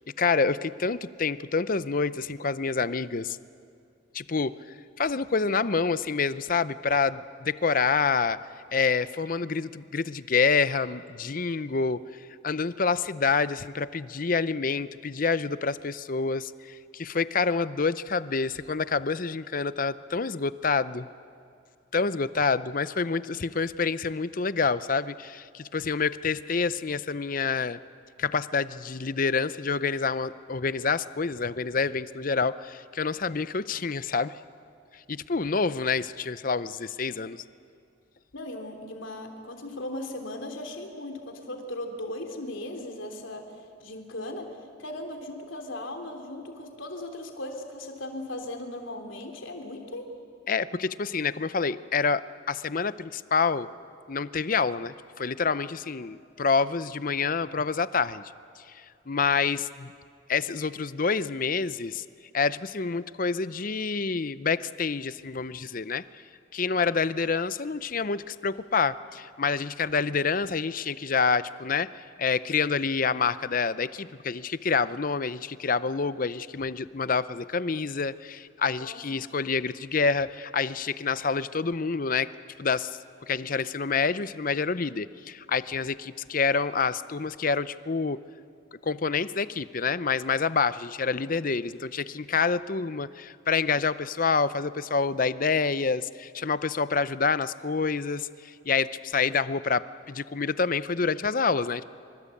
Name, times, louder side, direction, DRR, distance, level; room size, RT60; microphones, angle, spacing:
voice 1, 0.2-3.4 4.1-4.6 5.0-8.4 8.7-12.0 12.4-21.1 21.9-27.8 28.2-34.3 35.1-37.4 50.5-52.2 52.5-53.7 54.1-58.2 59.1-59.9 60.3-62.0 62.3-66.0 66.5-71.9 72.2-82.3 82.6-82.9 83.3-88.2 88.8-101.8, left 5 dB, 45° left, 15 dB, 0.6 m, -27 dB
voice 2, 38.3-43.4 43.8-44.5 44.8-50.1 78.8-79.0, left 1 dB, 75° left, 3 dB, 3.3 m, -37 dB
25.0 x 24.5 x 8.5 m, 2.4 s
head